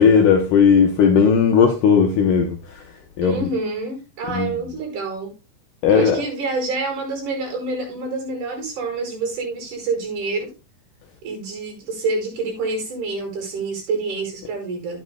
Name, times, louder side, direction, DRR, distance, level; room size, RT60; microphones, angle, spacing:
voice 1, 0.0-2.8 3.2-3.5 4.3-4.5 5.8-6.2, left 6 dB, 70° left, 2.4 m, -16 dB
voice 2, 3.2-5.3 5.9-10.5 11.2-15.0, right 3 dB, 55° right, 6.2 m, -27 dB
13.0 x 9.6 x 2.2 m
omnidirectional pair, 4.4 m